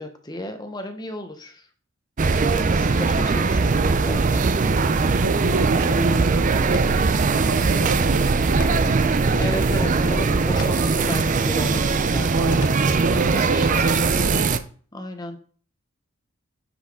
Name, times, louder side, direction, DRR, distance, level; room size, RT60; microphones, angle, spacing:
voice 1, 0.0-1.7 2.2-4.4 9.4-14.0 14.9-15.4, left 1 dB, 20° left, 1.1 m, -34 dB
sound 1, 2.2-14.6, right 4 dB, 35° right, 0.5 m, -20 dB
voice 2, 5.1-9.4 12.3-14.5, right 3 dB, 80° right, 0.7 m, -29 dB
sound 2, 6.7-14.3, left 4 dB, 80° left, 0.8 m, -41 dB
9.9 x 5.6 x 3.7 m
head